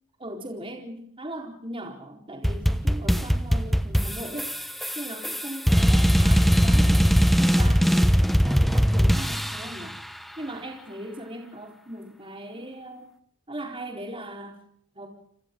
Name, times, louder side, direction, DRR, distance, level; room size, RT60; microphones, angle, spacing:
voice 1, 0.2-4.6 4.9-9.9 10.4-13.1 13.5-14.6 14.9-15.1, right 1 dB, 25° right, 1 dB, 4.3 m, -38 dB
sound 1, 2.4-9.8, equal, ahead, 1.1 m, -20 dB
29.5 x 27.5 x 3.9 m, 0.66 s
head